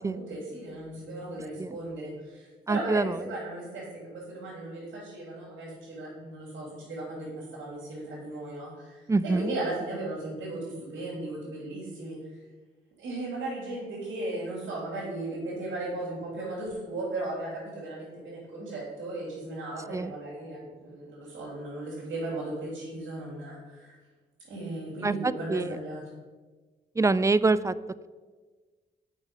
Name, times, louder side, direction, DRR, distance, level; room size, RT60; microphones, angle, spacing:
voice 1, 0.0-12.2 13.0-24.0 24.4-26.0, right 2 dB, 85° right, -8 dB, 2.7 m, -36 dB
voice 2, 2.7-3.2 9.1-9.5 19.9-20.1 25.0-25.8 27.0-27.7, right 3 dB, 15° right, 17 dB, 0.3 m, -25 dB
7.3 x 5.3 x 5.1 m, 1.4 s
cardioid pair, 60°, 20 cm